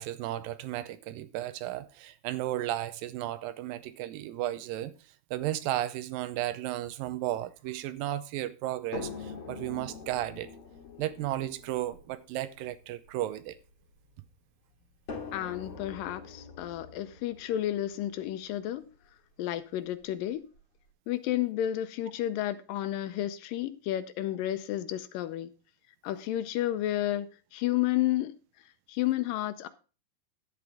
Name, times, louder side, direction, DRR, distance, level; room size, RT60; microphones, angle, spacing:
voice 1, 0.0-4.9 5.3-10.5 11.0-13.6, right 14 dB, 80° right, 2.4 m, -34 dB
sound 1, 8.9-14.1 15.1-19.0 20.0-20.1 20.5-20.6, left 4 dB, 45° left, 2.5 m, -45 dB
voice 2, 15.3-18.9 19.4-20.4 21.1-25.5 26.0-27.3 27.5-28.4 28.9-29.7, left 13 dB, 80° left, 2.4 m, -31 dB
11.0 x 8.7 x 3.4 m
omnidirectional pair, 4.0 m